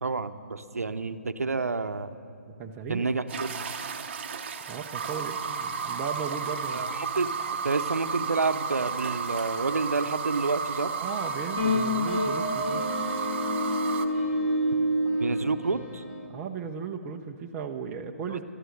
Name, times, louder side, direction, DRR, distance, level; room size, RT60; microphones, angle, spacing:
voice 1, 0.0-2.1 2.9-3.5 6.7-7.4 7.6-10.9 15.2-16.0 18.3-18.4, right 3 dB, 80° right, 10 dB, 0.8 m, -29 dB
voice 2, 2.5-3.1 4.7-6.8 10.9-12.8 16.3-18.4, right 6 dB, 15° right, 3 dB, 0.7 m, -36 dB
sound 1, 3.3-14.1, right 5 dB, 45° right, 0.9 m, -33 dB
sound 2, 11.1-16.3, equal, 30° left, 2.1 m, -28 dB
13.0 x 12.5 x 7.9 m, 2.5 s
figure-of-eight pair, 145°, 8 cm